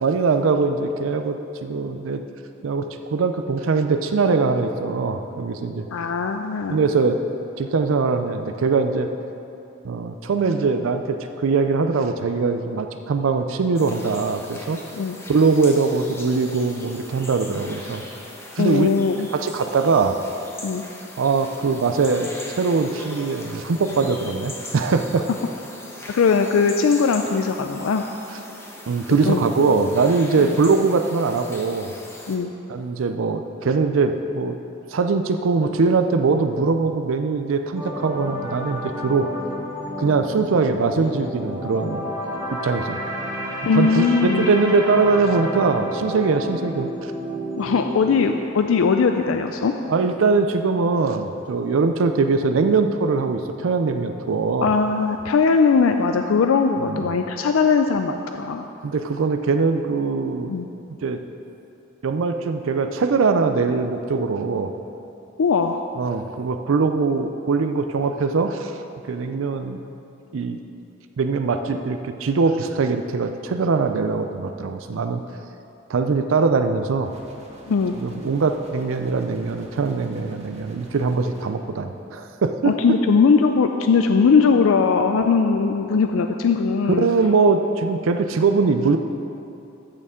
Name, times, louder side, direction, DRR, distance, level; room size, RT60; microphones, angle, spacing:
voice 1, 0.0-2.2 2.6-5.8 6.7-7.2 7.6-9.1 9.8-14.8 15.3-18.0 18.6-18.9 19.3-20.2 21.2-25.3 28.9-31.9 32.7-34.6 34.9-39.3 40.0-42.0 42.6-43.0 43.8-47.1 49.9-54.7 56.8-57.1 58.8-60.5 61.0-61.2 62.0-64.7 66.0-68.8 69.1-69.8 70.3-70.6 71.2-75.2 75.9-77.1 78.0-82.7 87.0-89.0, right 4 dB, 75° right, 7 dB, 0.4 m, -21 dB
voice 2, 5.9-6.8 14.9-15.2 18.6-19.3 20.6-20.8 26.1-28.0 29.3-29.4 30.4-30.6 32.3-32.5 43.6-44.6 47.6-49.7 54.6-58.6 60.5-60.7 65.4-65.8 77.7-78.0 82.6-87.1, left 5 dB, 80° left, 6 dB, 0.4 m, -19 dB
sound 1, 13.8-32.4, left 1 dB, 15° left, 0.9 m, -40 dB
sound 2, 37.8-51.9 52.2-52.4, equal, 15° right, 2.4 m, -32 dB
sound 3, 77.1-81.5, equal, 35° right, 1.7 m, -45 dB
14.0 x 6.7 x 3.7 m, 2.8 s
head